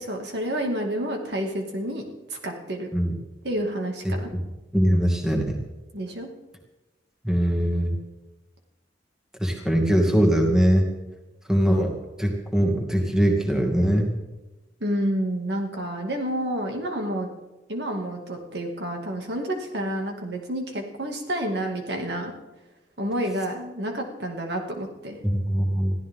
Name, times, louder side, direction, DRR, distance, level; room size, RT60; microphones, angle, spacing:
voice 1, 0.0-2.9 3.4-4.3 5.9-6.3 14.8-17.3 17.7-22.3 23.0-25.2, right 1 dB, 60° right, 2 dB, 2.3 m, -29 dB
voice 2, 4.7-5.6 7.2-8.0 9.4-10.8 11.5-11.9 12.2-14.1 25.2-25.9, equal, 5° right, 1 dB, 2.2 m, -21 dB
22.5 x 15.5 x 3.7 m, 1.1 s
head